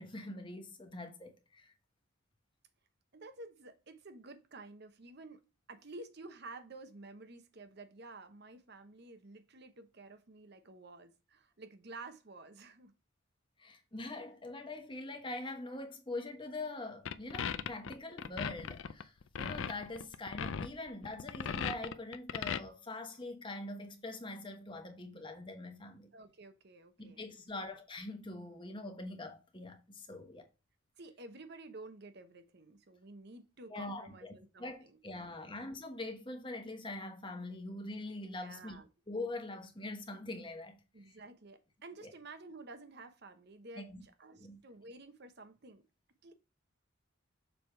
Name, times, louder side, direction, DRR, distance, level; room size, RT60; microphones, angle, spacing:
voice 1, 0.0-1.7 13.6-26.1 27.0-30.5 33.7-34.3 34.6-38.8 39.1-40.8 41.0-41.2 42.0-42.1 43.8-44.0 44.3-44.6, left 2 dB, 25° left, 1.1 m, -43 dB
voice 2, 3.1-12.9 26.1-27.6 31.0-35.4 38.4-38.9 40.9-45.8 46.2-46.3, right 2 dB, 50° right, 0.8 m, -52 dB
sound 1, 17.1-22.6, left 7 dB, 65° left, 0.4 m, -37 dB
6.9 x 3.5 x 4.5 m
head